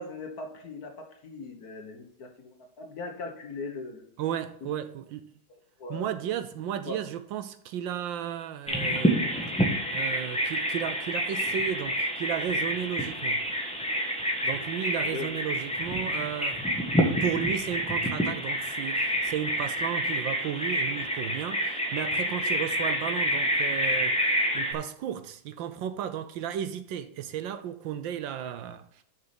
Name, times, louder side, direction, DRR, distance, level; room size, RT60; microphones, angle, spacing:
voice 1, 0.0-4.1 4.6-4.7 5.5-6.2 6.8-7.1 15.1-15.3, left 3 dB, 50° left, 1.7 m, -39 dB
voice 2, 4.2-5.3 5.9-9.2 9.9-13.4 14.4-16.6 17.0-29.0, right 10 dB, 75° right, 1.3 m, -34 dB
Bird vocalization bird call bird song, 8.7-24.7, equal, 5° left, 1.0 m, -28 dB
6.9 x 6.5 x 6.0 m
omnidirectional pair, 2.2 m